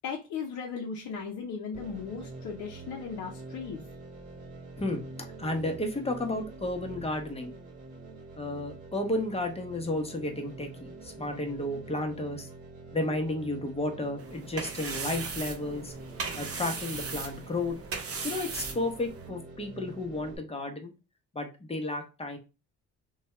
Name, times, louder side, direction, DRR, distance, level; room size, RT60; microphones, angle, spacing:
voice 1, 0.0-3.8, left 5 dB, 60° left, 0 dB, 0.7 m, -37 dB
sound 1, 1.7-20.4, right 3 dB, 25° right, 1.3 m, -46 dB
voice 2, 5.4-7.5 8.3-12.5 12.9-15.9 16.3-17.7 18.2-20.9 21.3-22.4, left 2 dB, 20° left, 4 dB, 0.8 m, -32 dB
sound 2, 14.2-19.3, right 4 dB, 45° right, 0.8 m, -38 dB
2.7 x 2.3 x 3.1 m, 0.30 s
supercardioid pair, 70°, 33 cm